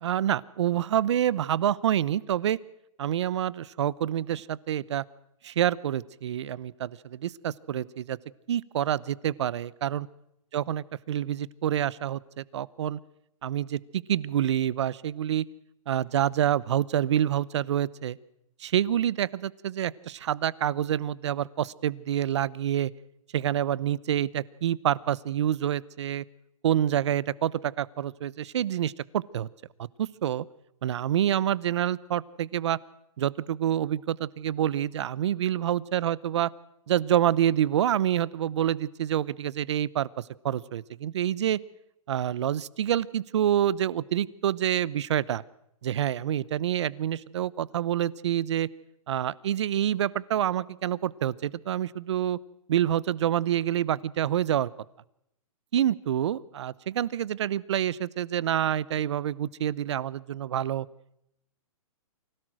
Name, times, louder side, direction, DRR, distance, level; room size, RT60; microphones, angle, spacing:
voice 1, 0.0-2.6 3.0-5.0 5.4-8.2 8.5-10.1 10.5-13.0 13.4-15.5 15.9-18.2 18.6-22.9 23.3-26.2 26.6-29.5 30.0-30.4 30.8-32.8 33.2-36.5 36.9-41.6 42.1-45.4 45.8-48.7 49.1-52.4 52.7-54.7 55.7-60.9, right 11 dB, 50° right, 22 dB, 0.8 m, -27 dB
24.5 x 17.0 x 6.2 m, 0.77 s
hypercardioid pair, 165°, 18 cm